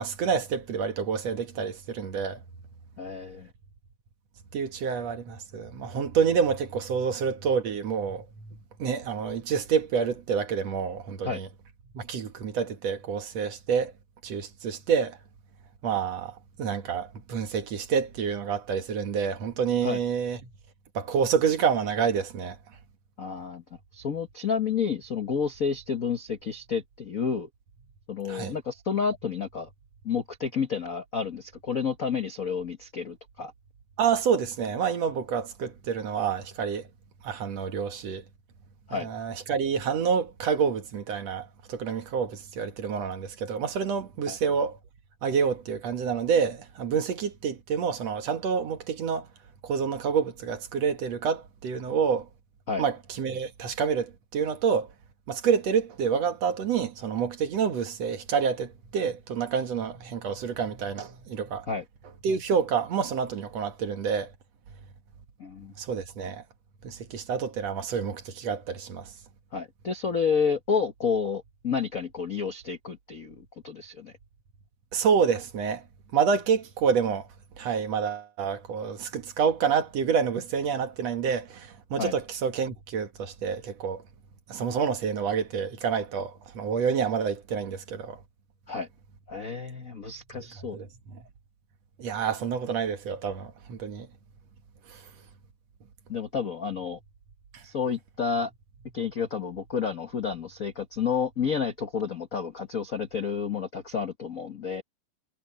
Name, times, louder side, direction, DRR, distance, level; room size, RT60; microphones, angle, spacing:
voice 1, 0.0-2.4 4.5-11.5 11.9-13.9 14.2-15.2 15.8-20.4 20.9-22.6 28.3-28.5 34.0-36.9 37.2-38.2 38.9-44.8 45.2-49.3 49.6-52.3 52.8-54.9 55.3-61.7 62.2-64.3 65.8-66.4 66.8-69.1 74.9-75.8 76.1-77.3 77.6-84.0 84.5-88.2 90.7-90.9 92.0-94.1 94.9-95.0 97.5-97.6, right 6 dB, 60° right, 2.6 m, -28 dB
voice 2, 3.0-3.5 11.2-11.4 19.8-20.0 23.2-23.6 23.9-27.5 28.1-29.7 30.0-33.5 38.9-39.1 44.3-44.4 52.7-52.9 61.7-61.8 65.4-65.7 69.5-74.1 82.0-82.1 88.7-88.9 89.3-90.8 96.1-97.0 97.6-98.5 98.9-104.8, left 6 dB, 70° left, 0.8 m, -30 dB
omnidirectional pair, 3.7 m